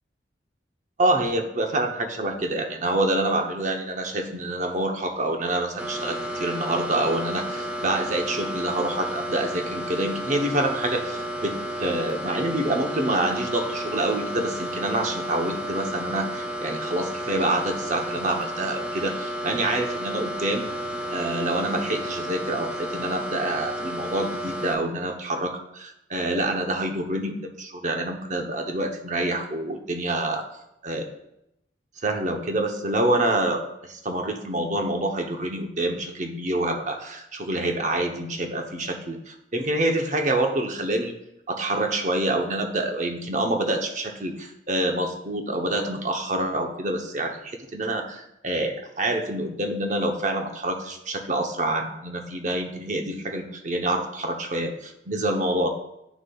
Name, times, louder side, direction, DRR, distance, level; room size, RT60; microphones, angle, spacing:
voice 1, 1.0-20.7 21.1-30.4 30.8-31.1 32.0-41.1 41.5-55.7, right 1 dB, 40° right, 3 dB, 0.8 m, -27 dB
sound 1, 5.8-24.7, equal, 5° right, 0.6 m, -32 dB
9.2 x 6.7 x 2.3 m, 0.83 s
head